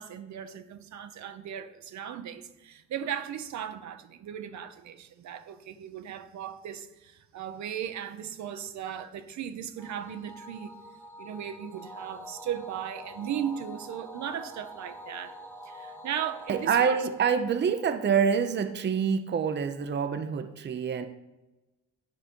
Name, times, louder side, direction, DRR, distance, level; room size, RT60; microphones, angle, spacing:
voice 1, 0.0-10.8 11.2-15.4 15.6-17.0, right 9 dB, 70° right, 0.8 m, -37 dB
sound 1, 9.8-18.4, equal, 5° left, 1.1 m, -46 dB
voice 2, 16.5-21.1, right 6 dB, 35° right, 0.7 m, -26 dB
10.5 x 5.1 x 4.4 m
cardioid pair, 90°, 30 cm